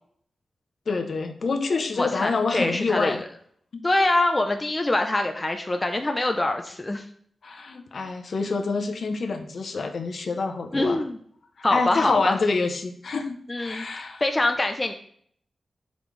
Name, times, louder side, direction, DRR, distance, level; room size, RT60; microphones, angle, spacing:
voice 1, 0.9-3.2 3.7-3.8 7.4-11.0 11.7-14.2, left 4 dB, 60° left, 5 dB, 0.7 m, -27 dB
voice 2, 2.0-3.2 3.8-7.0 10.7-11.2 11.6-12.4 13.5-13.9 14.2-14.9, left 2 dB, 20° left, 5 dB, 0.4 m, -24 dB
7.0 x 5.1 x 3.2 m, 0.62 s
wide cardioid pair, 150°, 0 cm